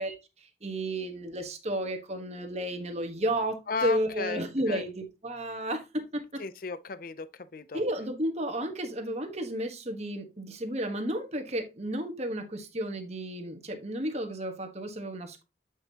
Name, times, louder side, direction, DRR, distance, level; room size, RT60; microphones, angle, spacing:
voice 1, 0.0-6.4 7.7-15.4, right 1 dB, 35° right, 1.3 m, -32 dB
voice 2, 3.7-4.8 6.4-7.8, left 4 dB, 50° left, 0.5 m, -35 dB
8.2 x 5.3 x 2.9 m
head